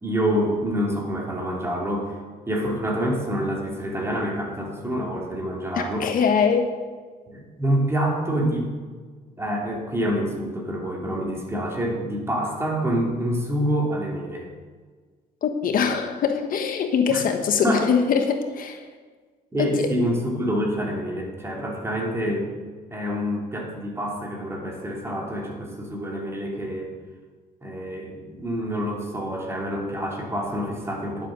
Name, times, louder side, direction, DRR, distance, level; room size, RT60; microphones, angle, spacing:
voice 1, 0.0-2.2 2.5-6.1 7.3-8.7 9.4-14.5 17.1-17.2 17.6-17.9 19.5-22.5 22.9-26.9 27.6-31.3, equal, 15° right, -1 dB, 2.7 m, -27 dB
voice 2, 5.7-6.7 15.4-18.8 19.6-19.9, left 6 dB, 55° left, 6 dB, 1.1 m, -23 dB
11.0 x 7.6 x 6.2 m, 1.5 s
cardioid pair, 110°, 17 cm